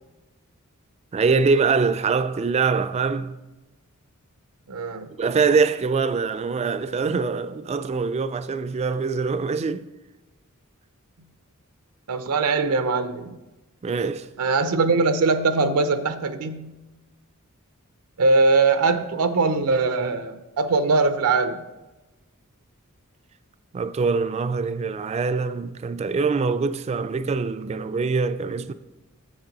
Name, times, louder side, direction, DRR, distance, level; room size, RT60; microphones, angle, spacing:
voice 1, 1.1-3.4 5.2-9.9 13.8-14.3 23.7-28.7, right 4 dB, 30° right, 0.3 m, -23 dB
voice 2, 4.7-5.1 12.1-13.4 14.4-16.7 18.2-21.6, right 3 dB, 80° right, 0.5 m, -21 dB
7.4 x 7.2 x 3.9 m
head